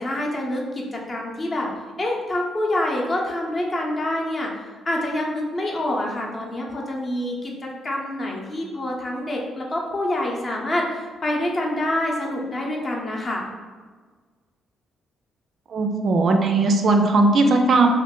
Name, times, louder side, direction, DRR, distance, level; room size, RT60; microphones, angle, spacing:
voice 1, 0.0-1.7 2.0-4.5 4.9-13.4, left 1 dB, 35° left, -2 dB, 0.7 m, -26 dB
voice 2, 15.7-17.9, right 3 dB, 55° right, 4 dB, 0.3 m, -18 dB
2.5 x 2.3 x 3.6 m, 1.5 s
cardioid pair, 90°, 0 cm